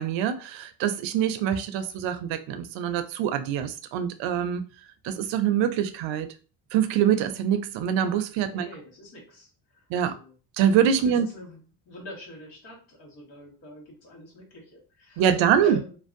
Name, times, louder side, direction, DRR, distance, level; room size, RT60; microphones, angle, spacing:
voice 1, 0.0-4.6 5.0-6.3 6.7-8.7 9.9-10.2 10.6-11.3 15.2-15.8, right 9 dB, 70° right, 0.5 m, -24 dB
voice 2, 8.5-9.5 10.0-10.3 11.0-11.6 11.8-16.0, left 1 dB, 70° left, 1.4 m, -45 dB
2.6 x 2.1 x 2.5 m
supercardioid pair, 80°, 48 cm